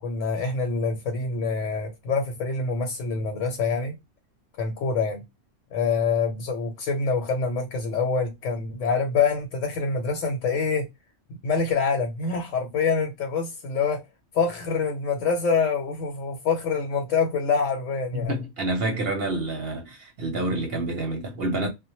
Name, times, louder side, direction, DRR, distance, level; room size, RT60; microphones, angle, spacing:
voice 1, 0.0-4.0 4.6-5.2 5.7-10.9 11.4-14.0 14.3-18.3, left 5 dB, 80° left, 1.0 m, -26 dB
voice 2, 18.1-21.7, right 2 dB, 60° right, 0.8 m, -28 dB
2.1 x 2.1 x 2.8 m
omnidirectional pair, 1.3 m